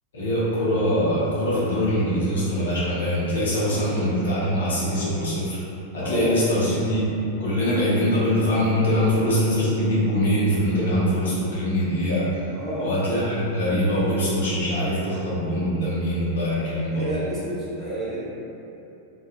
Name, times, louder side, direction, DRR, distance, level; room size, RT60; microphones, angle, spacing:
voice 1, 0.1-5.6 5.9-7.1 7.4-12.2 12.8-17.1, equal, 65° left, -8 dB, 0.7 m, -23 dB
voice 2, 5.9-6.4 12.5-12.9 16.5-18.2, right 1 dB, 15° right, -10 dB, 0.8 m, -31 dB
2.3 x 2.2 x 2.9 m, 2.8 s
figure-of-eight pair, 90°, 0 cm